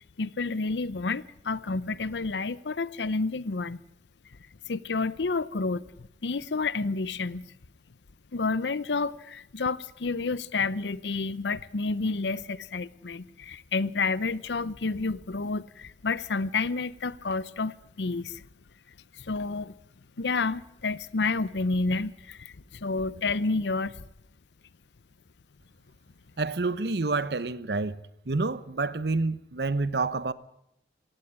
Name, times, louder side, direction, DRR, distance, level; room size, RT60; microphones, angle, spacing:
voice 1, 0.2-3.8 4.7-5.8 6.2-7.5 8.3-18.4 19.2-19.7 20.2-24.0, left 3 dB, 85° left, 0.7 m, -30 dB
voice 2, 26.4-28.0 28.3-30.3, right 3 dB, 70° right, 0.9 m, -28 dB
17.0 x 16.5 x 9.7 m
head